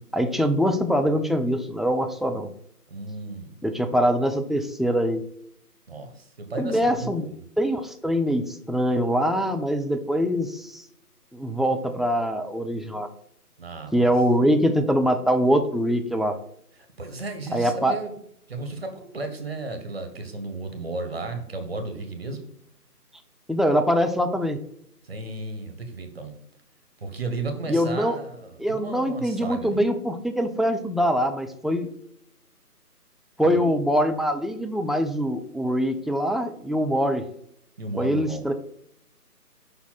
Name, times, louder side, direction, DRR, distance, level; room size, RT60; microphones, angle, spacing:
voice 1, 0.1-2.5 3.6-5.2 6.6-7.3 7.6-10.8 11.3-13.1 13.9-16.4 17.5-18.0 23.5-24.6 27.7-28.2 28.6-31.9 33.4-37.2 38.0-38.5, equal, ahead, 5 dB, 0.3 m, -23 dB
voice 2, 2.9-3.6 5.9-7.3 13.6-14.0 17.0-18.1 18.5-22.4 25.0-26.3 27.0-29.8 33.4-33.7 37.8-38.5, right 3 dB, 40° right, 7 dB, 1.2 m, -34 dB
5.6 x 4.3 x 5.8 m, 0.71 s
figure-of-eight pair, 165°, 47 cm